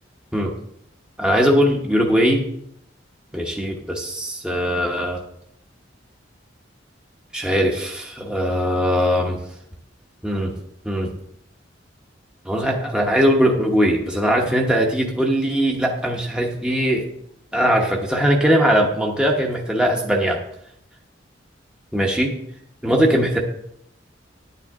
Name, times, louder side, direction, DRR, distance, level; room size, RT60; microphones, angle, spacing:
voice 1, 1.2-2.5 3.3-5.2 7.3-9.4 10.2-10.5 10.8-11.1 12.4-17.1 17.5-20.4 21.9-22.3 22.8-23.4, equal, 5° right, -1 dB, 1.0 m, -20 dB
10.5 x 9.2 x 3.6 m, 0.72 s
head